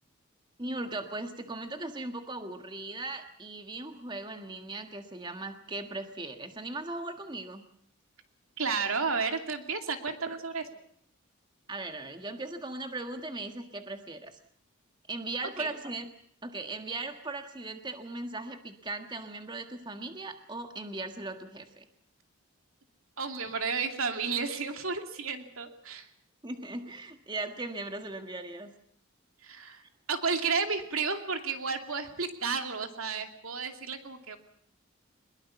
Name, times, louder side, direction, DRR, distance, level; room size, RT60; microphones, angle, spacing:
voice 1, 0.6-7.6 11.7-14.4 15.1-16.1 16.4-21.8 26.4-28.7, right 2 dB, 20° right, 6 dB, 1.6 m, -38 dB
voice 2, 8.6-10.6 15.6-15.8 23.2-26.1 29.4-29.8 30.1-34.4, right 5 dB, 80° right, 6 dB, 2.5 m, -32 dB
22.5 x 21.5 x 7.1 m, 0.68 s
head